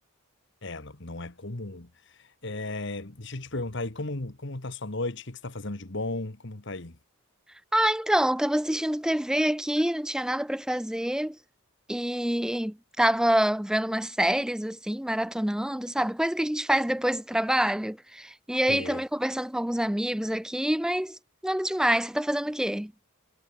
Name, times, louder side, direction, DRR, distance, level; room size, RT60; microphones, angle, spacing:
voice 1, 0.6-7.0 18.7-19.0, left 2 dB, 55° left, 1.6 m, -35 dB
voice 2, 7.7-11.4 11.9-22.9, right 1 dB, 5° right, 0.4 m, -26 dB
head